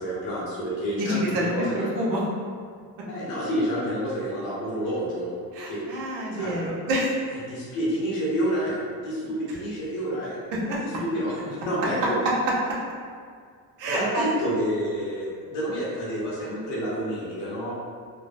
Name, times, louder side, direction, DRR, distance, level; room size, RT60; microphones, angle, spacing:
voice 1, 0.0-2.2 3.0-5.3 5.7-5.8 6.3-6.6 7.5-10.4 10.8-12.2 13.9-17.8, equal, 70° left, -7 dB, 1.3 m, -29 dB
voice 2, 1.0-1.4 1.9-2.2 5.6-7.1 10.5-10.8 13.8-14.3, right 1 dB, 75° right, -4 dB, 0.9 m, -27 dB
3.6 x 2.0 x 2.6 m, 2.1 s
cardioid pair, 120°, 43 cm